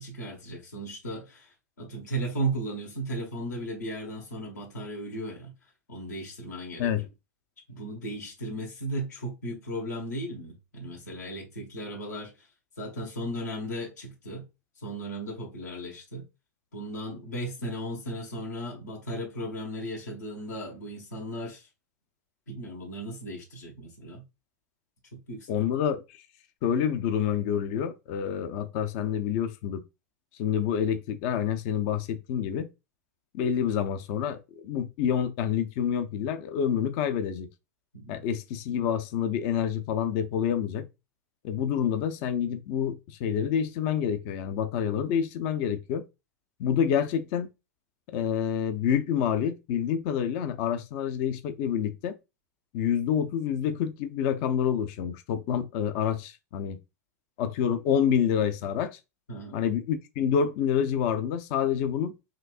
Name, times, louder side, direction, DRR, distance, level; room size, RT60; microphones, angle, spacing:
voice 1, 0.0-5.5 5.9-6.9 7.7-12.5 12.8-14.4 14.8-16.3 16.7-21.7 22.5-24.2 25.1-25.5 37.9-38.2 59.3-59.6, right 1 dB, 80° left, 1.5 m, -36 dB
voice 2, 25.5-26.0 26.6-29.8 30.4-32.7 33.3-37.5 38.1-40.9 41.4-46.0 46.6-47.5 48.1-52.2 52.7-56.8 57.4-59.0 59.5-62.1, left 8 dB, 50° left, 0.6 m, -27 dB
5.9 x 2.7 x 2.4 m
figure-of-eight pair, 95°, 9 cm